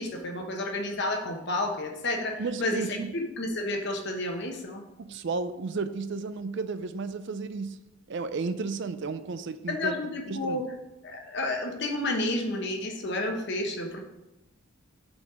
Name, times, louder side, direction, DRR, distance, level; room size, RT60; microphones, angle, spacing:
voice 1, 0.0-2.8 3.1-4.8 9.7-10.7 11.0-14.0, left 2 dB, 50° left, 3 dB, 1.1 m, -31 dB
voice 2, 2.4-3.1 5.0-7.8 8.1-9.9 10.3-10.6, right 4 dB, 55° right, 11 dB, 0.4 m, -33 dB
5.3 x 5.2 x 6.0 m, 0.96 s
head